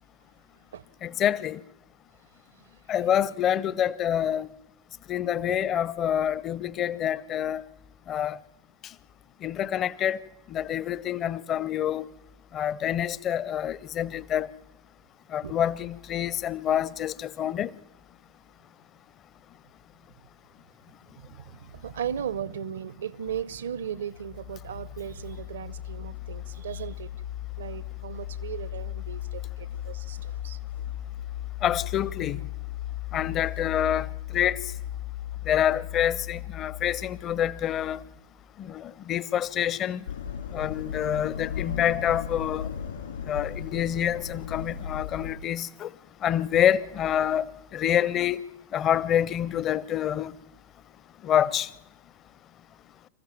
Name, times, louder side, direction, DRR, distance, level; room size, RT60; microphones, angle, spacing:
voice 1, 1.0-1.6 2.9-4.5 5.1-7.6 8.1-8.4 9.4-10.2 10.5-12.1 12.5-14.5 15.3-17.7 31.6-32.4 33.1-34.1 34.3-34.6 35.5-38.0 38.6-40.0 40.5-42.7 43.3-45.9 46.2-47.4 47.7-48.4 48.7-50.3 51.2-51.7, left 10 dB, 30° left, 0.6 m, -27 dB
voice 2, 21.1-27.1 27.6-30.6, right 8 dB, 65° right, 0.7 m, -37 dB
sound 1, 23.7-38.2, left 14 dB, 85° left, 1.2 m, -37 dB
sound 2, 40.1-45.3, left 7 dB, 70° left, 2.3 m, -35 dB
26.5 x 14.5 x 7.5 m
figure-of-eight pair, 90°, 0 cm